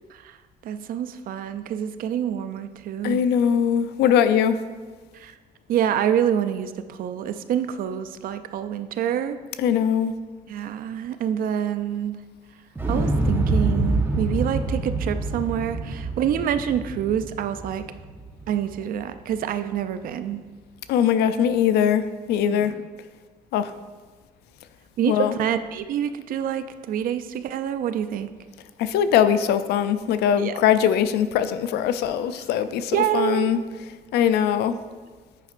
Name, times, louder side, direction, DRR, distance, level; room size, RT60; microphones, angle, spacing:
voice 1, 0.6-3.3 5.1-5.4 5.7-9.4 10.5-12.2 12.9-17.8 18.5-20.4 22.5-22.8 25.0-28.3 30.4-30.5 32.9-33.5, right 9 dB, 55° right, 11 dB, 0.4 m, -27 dB
voice 2, 3.0-4.6 9.6-10.1 20.9-22.7 23.5-23.7 25.1-25.3 28.8-33.6 34.1-34.8, left 9 dB, 75° left, 12 dB, 0.4 m, -21 dB
Explosion, 12.8-18.8 19.1-19.2, right 2 dB, 15° right, 0.7 m, -26 dB
9.0 x 5.2 x 2.5 m, 1.4 s
cardioid pair, 110°, 17 cm